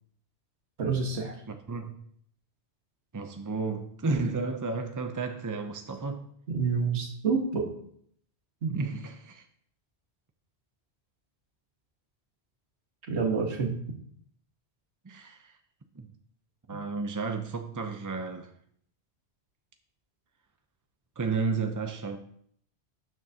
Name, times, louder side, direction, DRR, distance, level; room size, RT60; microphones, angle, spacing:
voice 1, 0.8-1.4 6.5-7.7 8.6-8.8 13.1-13.8 16.7-16.8, right 5 dB, 80° right, 1.6 m, -28 dB
voice 2, 1.5-2.0 3.1-6.3 8.7-9.4 15.0-15.6 15.9-16.1 16.7-18.5 21.2-22.2, right 4 dB, 30° right, 0.4 m, -32 dB
12.0 x 6.5 x 2.8 m
omnidirectional pair, 1.1 m